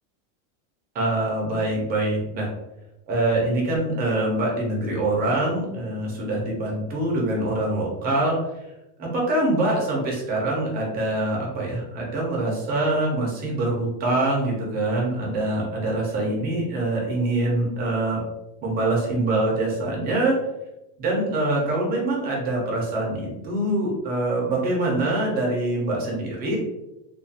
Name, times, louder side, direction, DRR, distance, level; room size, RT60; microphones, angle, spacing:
voice 1, 0.9-2.5 3.1-8.5 9.0-18.2 18.6-20.4 21.0-26.6, right 2 dB, 20° right, -3 dB, 0.4 m, -24 dB
2.3 x 2.3 x 2.6 m, 0.94 s
supercardioid pair, 160°, 46 cm